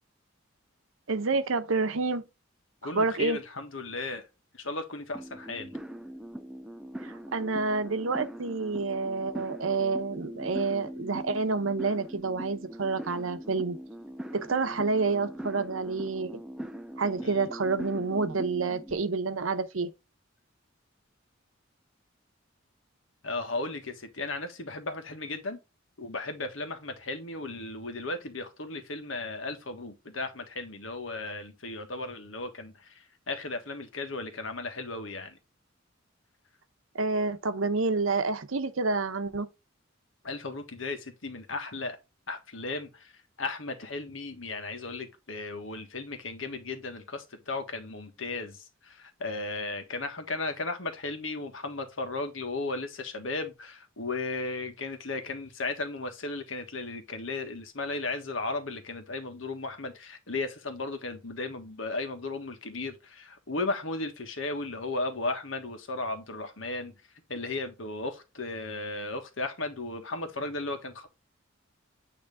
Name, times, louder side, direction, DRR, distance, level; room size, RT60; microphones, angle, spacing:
voice 1, 1.1-2.2 2.8-3.4 7.0-13.8 14.3-16.4 17.0-19.9 36.9-39.5, right 4 dB, 85° right, 0.8 m, -28 dB
voice 2, 2.8-4.2 4.5-5.7 17.2-17.5 23.2-25.6 26.0-35.4 40.2-42.0 42.3-43.1 43.4-66.9 67.3-71.1, left 3 dB, 75° left, 1.6 m, -35 dB
sound 1, 5.1-18.9, right 1 dB, 5° right, 0.4 m, -41 dB
8.9 x 3.3 x 3.5 m
head